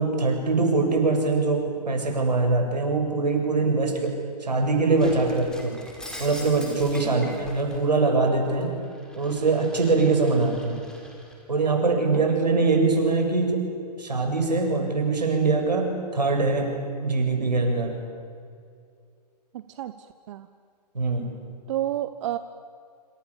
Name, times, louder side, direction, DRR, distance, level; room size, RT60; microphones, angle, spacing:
voice 1, 0.0-5.8 6.2-8.7 9.1-10.8 11.5-13.7 14.0-16.7 17.0-18.0 20.9-21.3, right 3 dB, 85° right, 3 dB, 7.3 m, -23 dB
Shatter, 5.0-7.8 8.3-11.4, left 1 dB, 5° left, 4.5 m, -43 dB
voice 2, 7.0-7.4 12.1-12.2 19.5-19.9 20.3-20.5 21.7-22.4, right 13 dB, 45° right, 12 dB, 1.1 m, -30 dB
27.5 x 27.0 x 7.3 m, 2.3 s
figure-of-eight pair, 125°, 21 cm